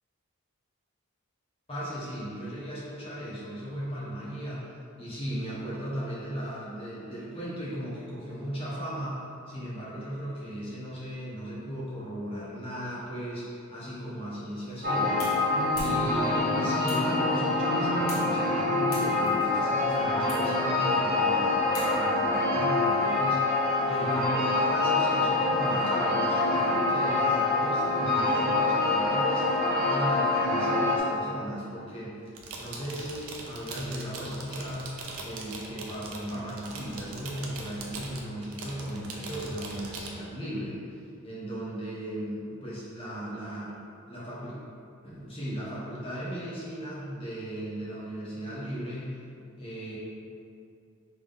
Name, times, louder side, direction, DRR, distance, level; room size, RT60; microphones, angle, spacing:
voice 1, 1.7-4.7 5.0-9.1 9.5-15.3 15.8-24.4 24.7-29.5 29.8-32.2 32.6-43.7 44.1-44.6 45.0-49.2 49.6-50.0, equal, 25° left, -9 dB, 1.1 m, -37 dB
sound 1, 14.5-22.3, left 1 dB, 90° left, 1.4 m, -46 dB
sound 2, 14.8-31.0, left 2 dB, 40° right, 1.4 m, -25 dB
sound 3, 32.3-40.1, right 3 dB, 80° right, 0.6 m, -41 dB
3.7 x 3.6 x 3.5 m, 2.5 s
head